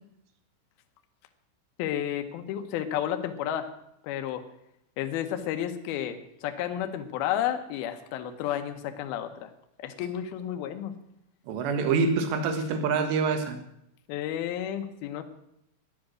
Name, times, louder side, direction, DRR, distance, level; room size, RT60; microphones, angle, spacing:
voice 1, 1.8-3.7 4.0-4.4 5.0-9.5 9.8-11.0 14.1-15.2, left 10 dB, 80° left, 7 dB, 2.2 m, -31 dB
voice 2, 11.5-13.6, right 4 dB, 70° right, 7 dB, 3.3 m, -26 dB
13.0 x 11.0 x 6.3 m, 0.78 s
omnidirectional pair, 5.8 m